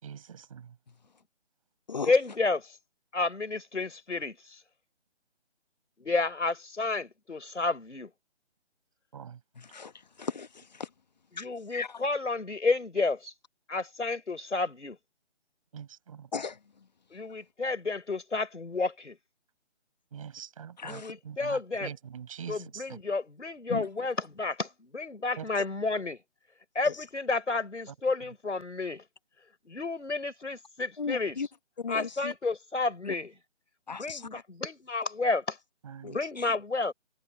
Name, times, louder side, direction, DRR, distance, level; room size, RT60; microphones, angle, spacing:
voice 1, 0.0-0.8 9.1-9.4 15.7-16.3 20.1-23.0 25.4-25.5 35.8-36.2, right 8 dB, 30° right, 5.4 m, -43 dB
voice 2, 2.1-2.8 3.1-4.6 6.0-8.1 11.4-13.3 13.7-15.0 17.1-19.2 20.8-21.9 22.5-26.2 26.7-29.0 29.7-31.4 31.9-33.3 34.0-35.6 36.0-36.9, left 3 dB, 85° left, 5.6 m, -31 dB
voice 3, 9.6-9.9 10.2-10.9 11.7-12.0 16.3-16.6 20.8-21.1 23.7-23.9 26.9-27.0 31.0-31.5 31.8-32.3 33.0-33.1 33.9-34.4 36.0-36.6, left 5 dB, 35° left, 1.3 m, -36 dB
figure-of-eight pair, 165°, 35 cm